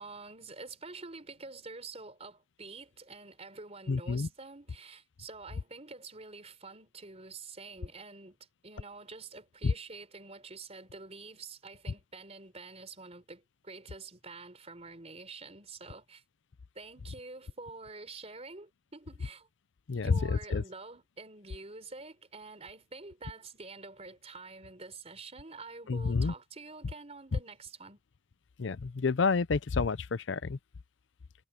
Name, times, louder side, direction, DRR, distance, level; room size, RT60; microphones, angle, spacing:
voice 1, 0.0-16.2 16.7-19.5 19.9-28.0, right 3 dB, 35° right, 4.1 m, -47 dB
voice 2, 3.9-4.3 9.6-9.7 19.9-20.6 25.9-26.3 28.6-30.6, left 4 dB, 65° left, 0.5 m, -29 dB
head